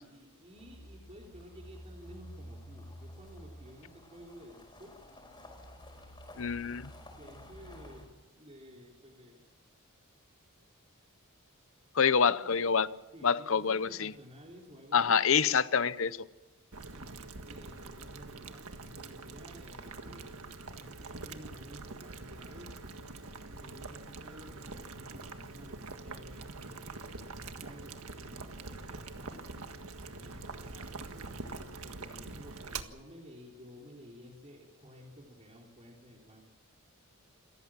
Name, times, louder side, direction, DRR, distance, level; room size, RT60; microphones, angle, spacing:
voice 1, 0.0-5.0 7.1-9.4 12.3-12.8 13.1-15.2 16.9-23.0 23.5-29.5 30.1-31.4 31.8-36.4, equal, 30° right, 3.8 m, -53 dB
je carongravel, 0.6-8.1, equal, 20° left, 5.6 m, -50 dB
voice 2, 6.4-6.9 11.9-12.9 13.2-14.1 14.9-16.2, left 6 dB, 65° left, 0.8 m, -27 dB
Boiling, 16.7-32.8, right 3 dB, 80° right, 1.7 m, -44 dB
28.0 x 15.0 x 7.5 m
head